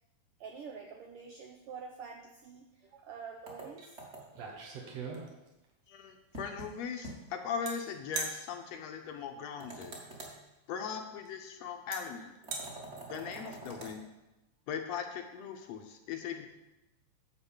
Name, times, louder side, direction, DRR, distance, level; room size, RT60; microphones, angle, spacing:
voice 1, 0.4-4.0, right 6 dB, 80° right, 3 dB, 1.3 m, -47 dB
sound 1, 3.5-4.5 6.3-6.7 7.0-7.2 7.5-7.6 9.6-10.4 12.4-14.0, right 2 dB, 30° right, 1.8 m, -46 dB
sound 2, 3.8-3.9 4.2-5.7 7.7-7.8 8.1-8.4 10.2-10.3 11.3-11.4 11.9-12.0 12.4-12.7, right 4 dB, 65° right, 2.4 m, -38 dB
voice 2, 5.9-9.9 10.7-12.3 13.1-14.0 14.7-16.5, left 6 dB, 70° left, 5 dB, 1.8 m, -39 dB
10.5 x 4.7 x 7.1 m, 1.0 s
omnidirectional pair, 3.3 m